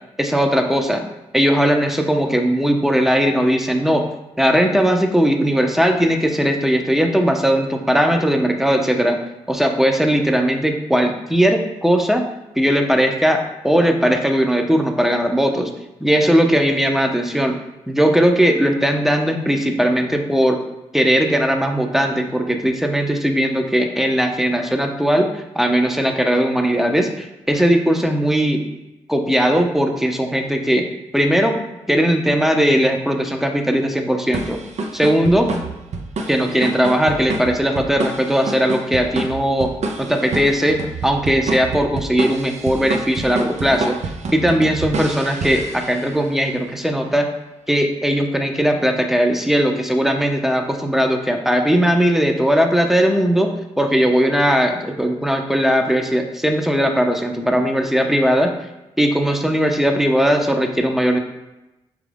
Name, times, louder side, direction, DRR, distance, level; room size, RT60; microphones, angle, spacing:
voice 1, 0.2-1.1 1.3-4.1 4.4-9.2 9.5-12.2 12.6-15.7 16.0-17.6 17.9-20.6 20.9-28.6 29.1-30.9 31.1-31.6 31.9-34.6 34.9-35.5 36.3-39.7 40.0-44.0 44.3-47.3 47.7-58.5 59.0-61.2, equal, ahead, 4 dB, 0.6 m, -18 dB
sound 1, 34.3-46.3, right 3 dB, 60° right, 0.5 m, -28 dB
5.0 x 2.4 x 3.4 m, 0.96 s
supercardioid pair, 40°, 13 cm